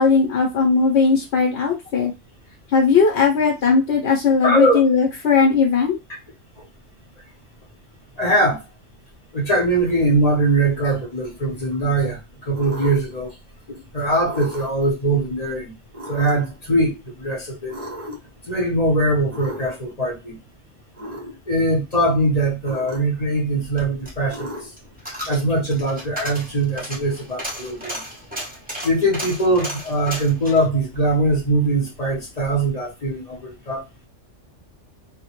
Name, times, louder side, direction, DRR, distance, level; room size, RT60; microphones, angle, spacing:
voice 1, 0.0-2.1 2.7-6.0, left 5 dB, 65° left, 0.9 m, -18 dB
voice 2, 4.4-4.8 8.2-8.6 9.3-13.4 13.7-15.7 16.1-17.8 18.4-20.4 21.5-24.7 25.3-28.0 28.8-33.8, right 1 dB, 40° left, 0.7 m, -21 dB
sound 1, 12.5-13.2 14.2-14.9 15.9-16.6 17.7-18.4 19.3-19.9 20.9-21.4 22.6-23.3 24.3-24.9, equal, 40° right, 0.5 m, -35 dB
Coin (dropping), 23.5-32.0 32.3-32.4, equal, 10° right, 0.8 m, -35 dB
2.1 x 2.0 x 2.9 m
omnidirectional pair, 1.3 m